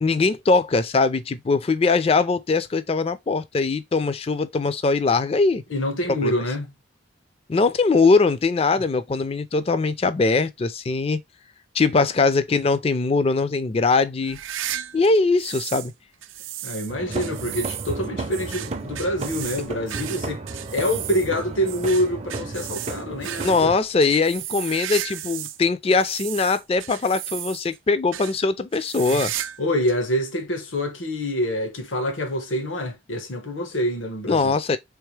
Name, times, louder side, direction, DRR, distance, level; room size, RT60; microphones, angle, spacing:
voice 1, 0.0-5.6 6.2-6.3 7.5-11.2 11.7-14.4 14.9-15.9 23.4-29.3 34.3-34.8, left 3 dB, 30° left, 0.4 m, -21 dB
voice 2, 5.7-6.7 16.6-20.4 20.7-23.7 29.1-29.2 29.6-34.5, equal, 85° left, 1.2 m, -26 dB
sound 1, 14.2-15.9 16.2-25.6 25.9-27.8 28.1-28.4 28.7-29.6 29.9-30.0 30.8-30.9 32.1-32.2, right 12 dB, 85° right, 0.5 m, -34 dB
sound 2, 16.9-23.8, right 3 dB, 35° right, 0.5 m, -33 dB
3.5 x 3.5 x 3.2 m
head